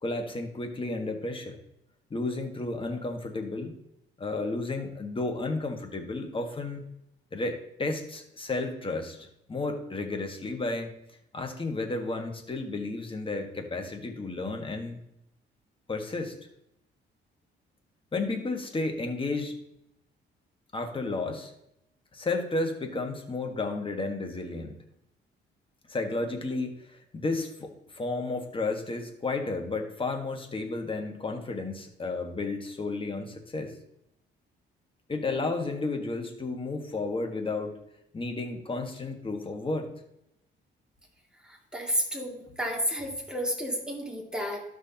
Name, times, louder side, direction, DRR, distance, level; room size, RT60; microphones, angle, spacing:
voice 1, 0.0-1.6 2.1-3.8 4.2-6.8 7.3-10.9 11.3-15.0 15.9-16.3 18.1-19.5 20.7-21.5 22.1-24.8 25.9-33.7 35.1-37.8 38.1-40.0, left 3 dB, 25° left, 4 dB, 1.5 m, -32 dB
voice 2, 41.5-44.6, equal, 5° right, -1 dB, 2.4 m, -31 dB
12.5 x 6.2 x 2.9 m, 0.79 s
cardioid pair, 90°, 20 cm